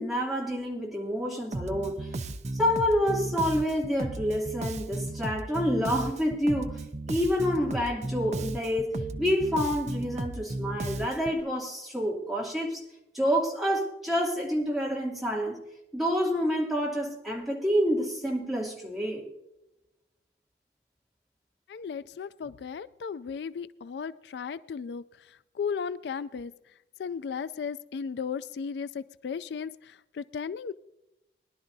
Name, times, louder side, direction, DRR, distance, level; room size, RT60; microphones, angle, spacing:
voice 1, 0.0-2.1 2.6-6.8 7.1-12.8 13.1-15.6 15.9-19.2, equal, ahead, -4 dB, 2.6 m, -28 dB
Bass guitar, 1.5-11.4, right 2 dB, 40° right, 0.5 m, -35 dB
voice 2, 21.7-25.0 25.6-26.5 27.0-30.7, left 6 dB, 75° left, 16 dB, 0.3 m, -35 dB
21.5 x 11.0 x 2.7 m, 0.90 s
head